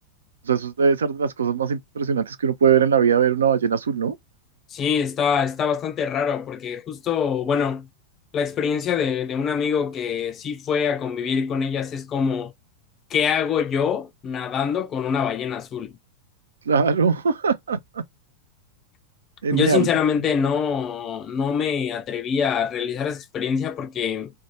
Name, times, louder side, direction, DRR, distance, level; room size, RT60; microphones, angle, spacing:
voice 1, 0.5-4.2 16.7-17.8 19.4-19.9, right 6 dB, 70° right, 0.4 m, -21 dB
voice 2, 4.7-7.9 8.3-12.5 13.1-15.9 19.5-24.3, left 7 dB, 30° left, 0.3 m, -24 dB
2.4 x 2.2 x 2.9 m
figure-of-eight pair, 90°, 0 cm